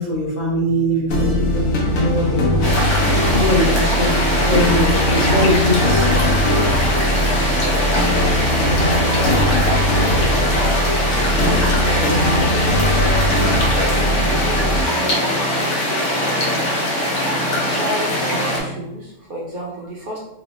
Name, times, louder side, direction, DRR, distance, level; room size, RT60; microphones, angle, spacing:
voice 1, 0.0-2.8 3.3-4.2 4.5-6.2 10.5-10.7, equal, 40° left, -6 dB, 0.6 m, -22 dB
sound 1, 0.7-18.9, right 2 dB, ahead, 0.5 m, -33 dB
sound 2, 1.1-14.8, left 1 dB, 90° left, 1.1 m, -20 dB
sound 3, 2.6-18.6, left 1 dB, 65° left, 1.1 m, -21 dB
voice 2, 11.4-12.2 12.9-15.5 17.5-20.2, right 1 dB, 55° right, -4 dB, 0.6 m, -31 dB
3.0 x 2.1 x 2.9 m, 0.87 s
omnidirectional pair, 1.3 m